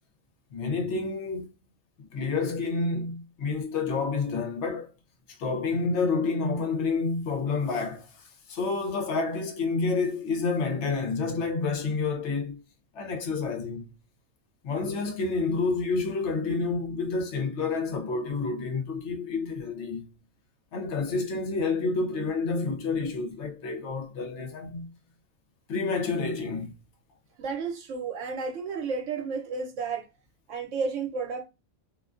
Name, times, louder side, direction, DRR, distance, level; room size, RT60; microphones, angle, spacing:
voice 1, 0.5-1.5 2.0-4.9 5.3-12.6 12.9-13.9 14.6-20.1 20.7-24.9 25.7-26.7, left 4 dB, 65° left, 0.8 m, -29 dB
voice 2, 27.4-30.1 30.5-31.4, right 5 dB, 65° right, 1.0 m, -32 dB
2.4 x 2.2 x 2.4 m
omnidirectional pair, 1.4 m